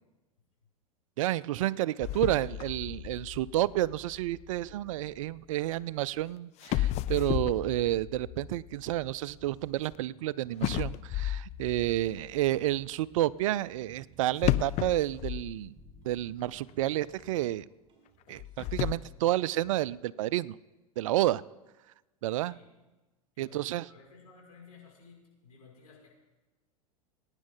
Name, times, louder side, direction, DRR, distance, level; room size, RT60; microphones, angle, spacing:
voice 1, 1.2-15.7 16.1-17.6 18.3-20.6 21.0-21.4 22.2-22.6 23.4-23.9, right 15 dB, 60° right, 21 dB, 0.4 m, -30 dB
sound 1, 2.0-5.2 6.1-6.2 6.6-10.0 10.6-12.5 14.4-16.2 16.5-16.6 17.2-17.3 18.3-18.9, left 13 dB, 35° left, 0.5 m, -34 dB
sound 2, 9.4-19.9, right 5 dB, 25° right, 4.7 m, -59 dB
voice 2, 11.6-12.1 21.2-21.5 22.3-22.8 23.3-26.1, left 5 dB, 80° left, -3 dB, 5.8 m, -56 dB
21.0 x 9.8 x 3.8 m, 1.1 s
figure-of-eight pair, 90°, 19 cm